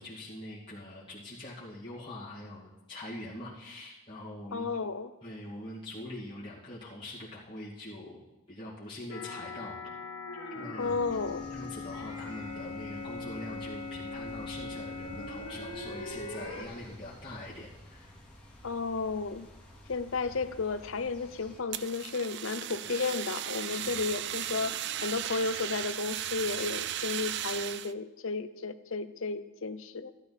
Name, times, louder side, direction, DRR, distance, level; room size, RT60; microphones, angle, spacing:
voice 1, 0.0-4.7 5.2-9.8 10.5-10.9 11.5-18.1 23.7-24.0, left 1 dB, 20° left, -10 dB, 2.4 m, -43 dB
voice 2, 4.5-5.1 10.8-11.5 18.6-19.5 19.9-30.1, left 4 dB, 60° left, 11 dB, 0.7 m, -33 dB
sound 1, 9.1-16.7, left 3 dB, 80° left, 2.4 m, -40 dB
sound 2, 10.8-21.6, equal, 5° left, 2.3 m, -51 dB
Fire, 21.7-27.9, right 12 dB, 50° right, 0.4 m, -36 dB
14.0 x 11.5 x 4.3 m, 1.1 s
head